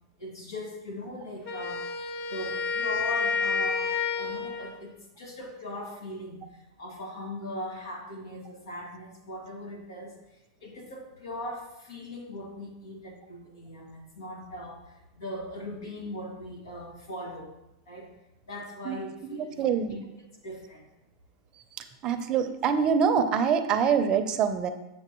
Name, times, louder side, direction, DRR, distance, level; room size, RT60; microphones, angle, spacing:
voice 1, 0.2-1.8 2.3-3.9 4.2-6.5 6.8-10.1 10.6-17.5 17.9-18.1 18.5-20.8, left 1 dB, 85° left, 0 dB, 2.1 m, -40 dB
Wind instrument woodwind instrument, 1.4-4.8, left 5 dB, 40° left, 1.2 m, -30 dB
voice 2, 19.6-20.0 22.0-24.7, right 7 dB, 35° right, 8 dB, 0.6 m, -24 dB
7.4 x 6.8 x 3.1 m, 0.94 s
hypercardioid pair, 130°, 2 cm